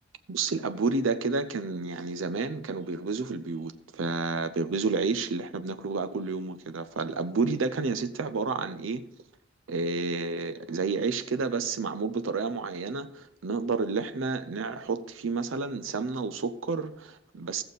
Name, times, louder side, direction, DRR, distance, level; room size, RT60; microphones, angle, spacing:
voice 1, 0.3-9.0 9.7-17.6, right 4 dB, 85° right, 0.5 m, -30 dB
15.0 x 6.8 x 4.0 m
head